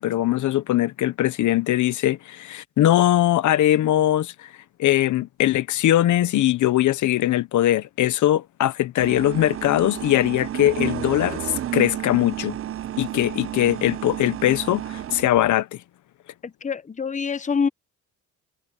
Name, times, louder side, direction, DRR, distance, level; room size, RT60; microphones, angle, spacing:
voice 1, 0.0-4.5 4.8-12.6 13.0-15.8, left 13 dB, 75° left, 1.0 m, -21 dB
sound 1, 9.0-15.5, right 12 dB, 45° right, 0.6 m, -31 dB
voice 2, 16.4-17.7, left 5 dB, 25° left, 0.9 m, -25 dB
cardioid pair, 90°, 30 cm